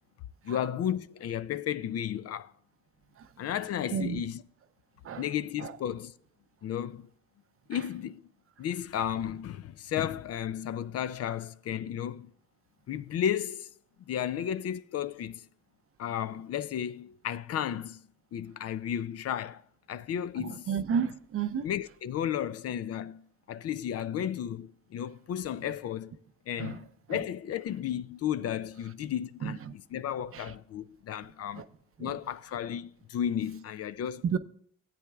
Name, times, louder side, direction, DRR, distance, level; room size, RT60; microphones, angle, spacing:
voice 1, 0.4-2.5 3.4-4.4 5.2-6.1 6.6-7.1 7.7-8.2 8.6-12.3 12.9-13.7 14.1-15.5 16.0-18.0 18.3-19.6 19.9-20.7 21.6-23.2 23.5-26.1 26.5-29.6 29.9-31.6 32.0-34.4, left 10 dB, 55° left, 0.4 m, -33 dB
voice 2, 3.9-4.2 5.0-5.3 5.6-5.7 7.7-7.8 20.4-21.7 26.6-26.8 27.1-27.2 29.4-29.6 30.3-30.5 31.6-31.7 32.0-32.1 34.2-34.4, right 7 dB, 45° right, 0.6 m, -32 dB
16.0 x 8.5 x 2.3 m
cardioid pair, 90°, 30 cm